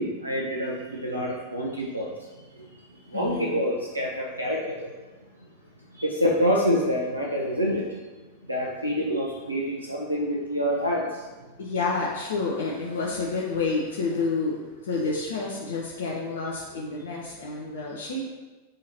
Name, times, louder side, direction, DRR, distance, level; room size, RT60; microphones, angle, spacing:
voice 1, 0.0-2.1 3.1-4.9 6.0-7.9 8.5-11.0, equal, 85° right, -2 dB, 0.5 m, -26 dB
voice 2, 3.1-3.6 11.6-18.2, left 3 dB, 65° left, -3 dB, 0.6 m, -29 dB
6.2 x 2.8 x 2.8 m, 1.2 s
figure-of-eight pair, 90°, 0 cm